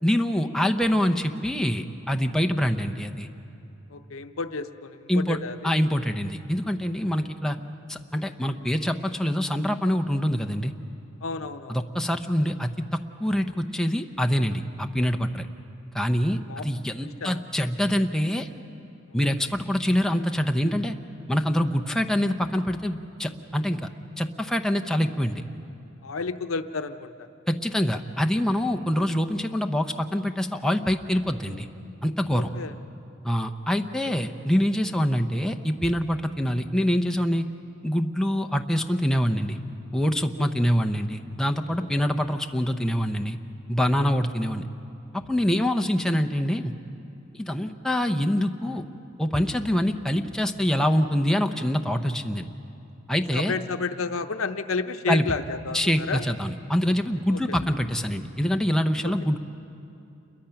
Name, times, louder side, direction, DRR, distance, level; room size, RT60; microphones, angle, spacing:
voice 1, 0.0-3.3 5.1-5.4 5.6-7.6 7.9-10.7 11.7-15.5 15.9-18.5 19.1-20.9 21.3-23.9 24.2-25.4 27.5-31.7 32.0-32.5 33.2-37.5 37.8-39.6 39.9-43.4 43.7-44.6 45.1-46.7 47.4-48.8 49.2-52.5 53.1-53.5 55.1-55.3 55.7-59.4, equal, 5° left, 4 dB, 0.7 m, -25 dB
voice 2, 3.9-5.7 11.2-11.8 16.5-16.7 17.2-17.4 26.0-27.3 32.3-32.7 34.0-34.1 40.4-40.5 53.3-56.2 57.3-57.6 59.0-59.1, left 4 dB, 85° left, 9 dB, 0.8 m, -31 dB
28.5 x 22.5 x 5.8 m, 2.8 s
head